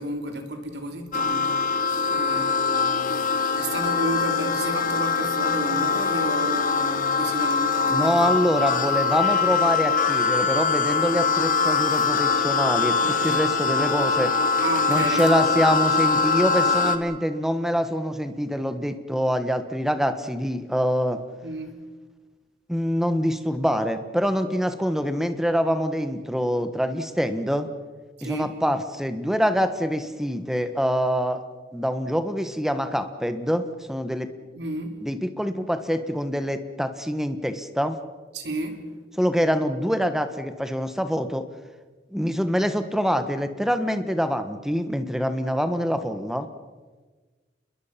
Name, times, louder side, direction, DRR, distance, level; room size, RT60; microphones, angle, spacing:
voice 1, 0.0-1.6 2.1-3.1 3.6-8.7 11.1-11.3 14.6-15.3 21.4-21.8 28.2-28.5 34.5-35.0 38.3-38.8, right 1 dB, 70° right, 6 dB, 3.1 m, -32 dB
sound 1, 1.1-17.0, left 5 dB, 50° left, 1.8 m, -23 dB
voice 2, 7.9-14.3 14.9-21.2 22.7-27.7 28.2-31.4 31.7-34.3 35.0-38.0 39.2-41.4 42.1-46.5, equal, ahead, 9 dB, 1.4 m, -25 dB
28.5 x 21.5 x 5.9 m, 1.3 s
head